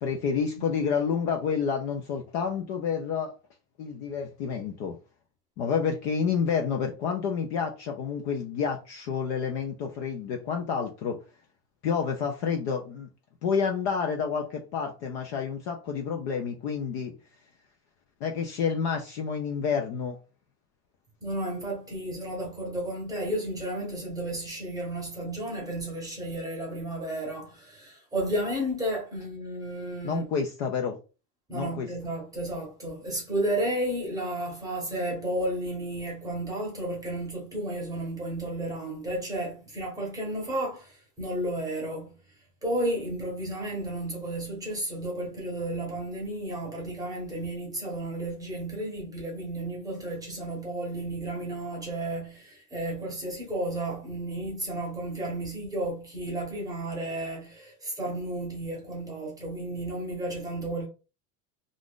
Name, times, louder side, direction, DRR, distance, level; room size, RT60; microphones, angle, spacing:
voice 1, 0.0-3.3 3.8-5.0 5.6-11.2 11.8-13.1 13.4-17.1 18.2-20.2 30.0-31.0 31.5-31.9, left 6 dB, 45° left, 0.4 m, -29 dB
voice 2, 21.2-30.3 31.5-42.1 42.6-60.9, right 1 dB, 10° right, 0.8 m, -32 dB
2.5 x 2.4 x 3.5 m
supercardioid pair, 160°, 48 cm